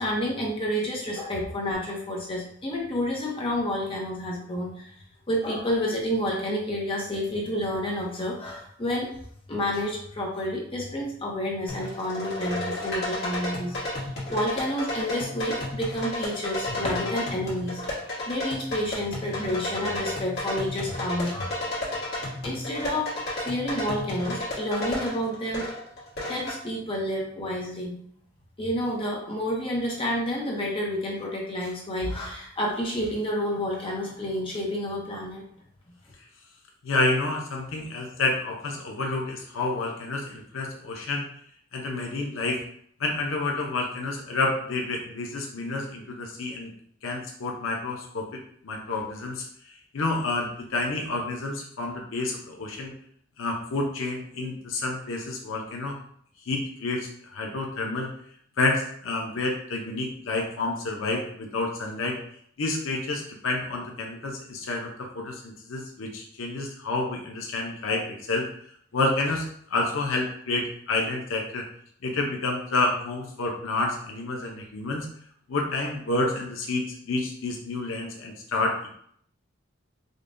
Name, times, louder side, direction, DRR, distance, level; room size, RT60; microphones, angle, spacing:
voice 1, 0.0-4.9 5.3-9.1 9.5-21.8 22.4-23.1 23.4-25.6 26.3-28.0 28.6-35.5, equal, 30° left, -2 dB, 0.7 m, -29 dB
sound 1, 11.7-26.6, left 1 dB, 55° left, 1.3 m, -32 dB
voice 2, 36.8-41.2 41.7-42.6 43.0-46.7 47.0-48.3 48.6-49.4 49.9-52.9 53.4-56.0 56.5-58.1 58.6-62.2 62.6-68.4 68.9-71.6 72.0-75.1 75.5-78.9, left 2 dB, 85° left, 0 dB, 0.6 m, -29 dB
5.2 x 2.2 x 2.5 m, 0.65 s
head